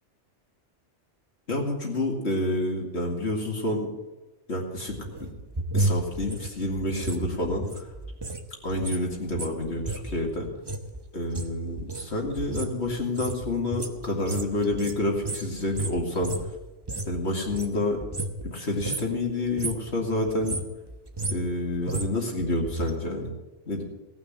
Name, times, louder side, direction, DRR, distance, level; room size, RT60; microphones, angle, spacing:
voice 1, 1.5-3.9 4.5-5.3 5.7-7.9 8.6-10.5 11.1-16.4 17.1-18.0 18.4-20.6 21.3-23.3 23.7-23.8, left 1 dB, 65° left, 0 dB, 2.5 m, -28 dB
sound 1, 4.9-8.4 8.7-17.2 17.5-18.5 18.8-19.2 19.5-19.9 20.3-22.9 23.2-23.3, right 2 dB, 25° right, 0.9 m, -32 dB
17.5 x 6.3 x 8.8 m, 1.1 s
omnidirectional pair, 1.2 m